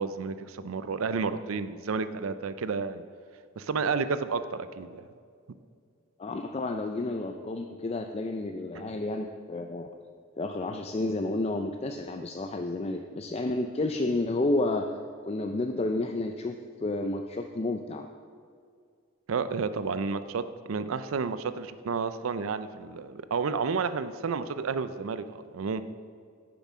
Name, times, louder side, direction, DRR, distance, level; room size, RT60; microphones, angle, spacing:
voice 1, 0.0-3.0 3.6-5.0 8.7-8.8 19.3-25.8, right 5 dB, 85° right, 13 dB, 0.5 m, -31 dB
voice 2, 6.2-9.9 10.4-14.9 15.2-18.1, left 2 dB, 30° left, 5 dB, 0.4 m, -31 dB
9.7 x 7.1 x 6.2 m, 2.2 s
head